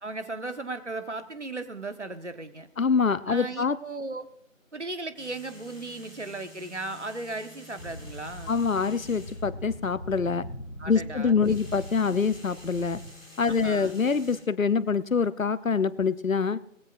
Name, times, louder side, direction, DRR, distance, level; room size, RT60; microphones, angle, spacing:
voice 1, 0.0-2.7 3.3-4.3 4.7-8.5 10.8-11.6 13.5-13.9, right 2 dB, 60° right, 9 dB, 1.3 m, -36 dB
voice 2, 2.8-3.8 8.5-10.5 10.9-13.0 13.4-16.6, left 5 dB, 75° left, 17 dB, 0.8 m, -25 dB
sound 1, 5.1-9.5 11.3-14.4, left 2 dB, 15° right, 4.8 m, -50 dB
sound 2, 7.8-13.1, equal, 30° left, 4.9 m, -41 dB
20.0 x 16.0 x 2.5 m, 0.75 s
figure-of-eight pair, 180°, 40 cm